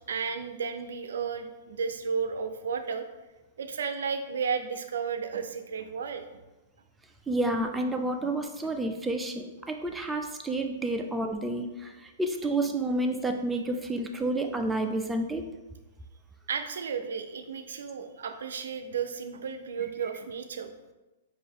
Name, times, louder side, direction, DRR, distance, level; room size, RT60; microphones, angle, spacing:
voice 1, 0.1-3.0 3.6-6.4 8.2-8.3 16.5-20.7, right 6 dB, 80° right, 8 dB, 0.4 m, -33 dB
voice 2, 7.3-15.5, right 2 dB, 10° right, 4 dB, 0.4 m, -30 dB
4.4 x 2.5 x 3.6 m, 1.1 s
hypercardioid pair, 125°, 0 cm